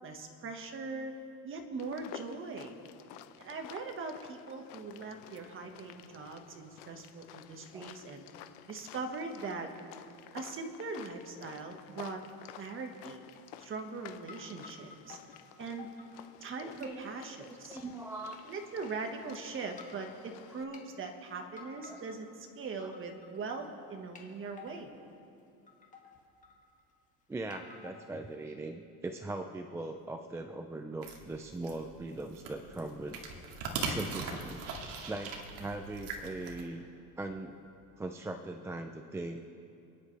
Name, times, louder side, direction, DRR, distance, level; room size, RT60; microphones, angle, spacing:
voice 1, 0.0-2.7 3.4-8.2 8.7-9.7 10.3-12.2 12.6-13.2 13.6-15.2 15.6-15.9 16.4-17.8 18.5-24.9, right 4 dB, 30° right, 4 dB, 1.5 m, -41 dB
sound 1, 1.8-20.6, left 12 dB, 85° left, 0.8 m, -52 dB
sound 2, 12.3-12.4 12.7-12.9 13.4-14.0 14.3-16.6 16.8-17.3 17.8-18.4 18.8-18.9 19.6-20.1 20.5-20.8 21.5-22.4 22.7-23.4 23.6-23.7 24.1-25.0 25.4-25.5 25.7-27.0 27.5-28.3, left 5 dB, 20° left, 1.8 m, -53 dB
voice 2, 16.6-17.1 17.4-18.4 21.8-22.0 22.8-22.9 27.3-33.2 33.8-34.6 35.1-36.9 37.2-37.6 38.0-39.4, right 2 dB, 5° right, 5 dB, 0.3 m, -40 dB
sound 3, 31.0-36.6, right 4 dB, 60° right, 2.2 m, -40 dB
29.5 x 10.5 x 3.3 m, 2.6 s
cardioid pair, 145°, 40 cm